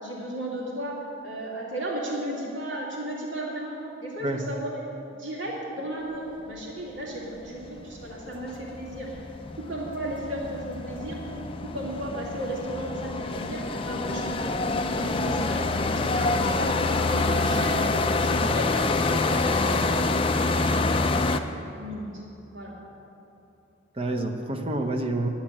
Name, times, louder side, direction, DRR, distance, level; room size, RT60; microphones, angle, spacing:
voice 1, 0.0-4.8 5.1-9.2 9.6-11.4 11.6-17.9 18.1-20.9 21.8-22.1 22.5-22.7, right 1 dB, 70° right, -3 dB, 2.6 m, -35 dB
sound 1, 7.2-7.3 7.5-21.4, left 3 dB, 25° left, 0.4 m, -26 dB
voice 2, 23.9-25.3, right 2 dB, 30° right, 4 dB, 0.8 m, -29 dB
11.5 x 7.3 x 8.9 m, 3.0 s
head